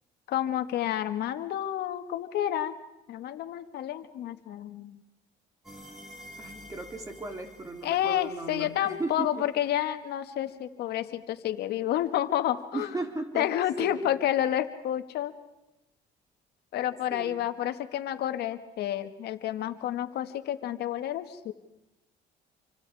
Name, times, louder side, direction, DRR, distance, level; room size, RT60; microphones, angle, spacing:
voice 1, 0.3-2.7 3.1-5.0 7.8-12.9 13.3-15.3 16.7-21.5, left 11 dB, 70° left, 9 dB, 1.8 m, -30 dB
sound 1, 5.6-9.4, left 1 dB, 5° right, 5.7 m, -49 dB
voice 2, 6.4-9.6 12.7-14.1 17.1-17.5, right 2 dB, 20° right, 4 dB, 3.9 m, -37 dB
28.0 x 25.0 x 4.8 m, 0.94 s
cardioid pair, 110°, 17 cm